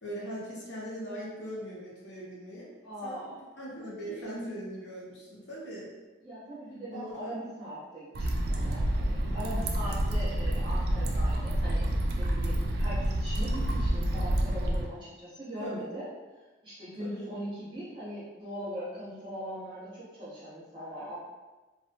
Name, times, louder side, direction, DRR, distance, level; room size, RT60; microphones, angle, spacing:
voice 1, 0.0-2.7 3.0-3.3 3.6-5.9 6.9-7.3 9.2-9.6 10.3-10.4 15.6-15.9 17.0-17.3, equal, 80° left, -6 dB, 0.9 m, -40 dB
voice 2, 2.8-3.4 6.2-16.1 16.6-21.2, equal, 25° right, -12 dB, 0.9 m, -40 dB
sound 1, 8.1-14.9, right 1 dB, 55° right, 0.3 m, -28 dB
2.5 x 2.3 x 2.8 m, 1.2 s
head